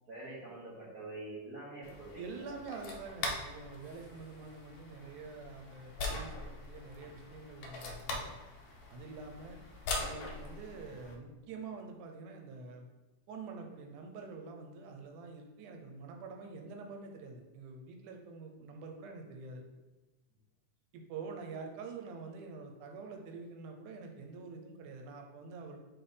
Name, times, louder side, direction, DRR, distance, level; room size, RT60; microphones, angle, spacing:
voice 1, 0.1-2.5, right 2 dB, 70° right, -7 dB, 0.8 m, -45 dB
Jack cable plug-in, 1.8-11.2, left 3 dB, 70° left, 1.5 m, -42 dB
voice 2, 2.1-8.3 8.9-9.6 10.0-12.9 13.3-19.6 20.9-25.8, right 4 dB, 85° right, 3 dB, 2.3 m, -46 dB
4.6 x 4.5 x 5.0 m, 1.2 s
omnidirectional pair, 3.4 m